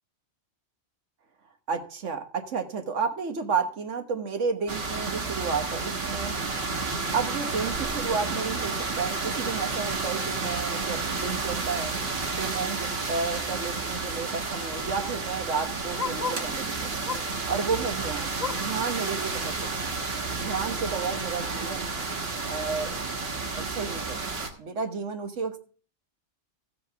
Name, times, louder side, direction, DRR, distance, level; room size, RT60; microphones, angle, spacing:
voice 1, 1.7-6.4 7.1-11.9 12.4-16.9 17.5-19.8 20.4-21.9 22.4-23.1 23.5-24.2 24.6-25.6, right 5 dB, 80° right, 6 dB, 1.5 m, -32 dB
sound 1, 4.7-24.5, right 3 dB, 55° right, 1.6 m, -31 dB
Bark, 15.9-16.5 17.0-17.4 17.8-18.8 19.3-19.4 19.8-19.9 20.5-20.6, left 5 dB, 35° left, 1.0 m, -37 dB
15.0 x 7.7 x 3.4 m, 0.40 s
omnidirectional pair, 1.2 m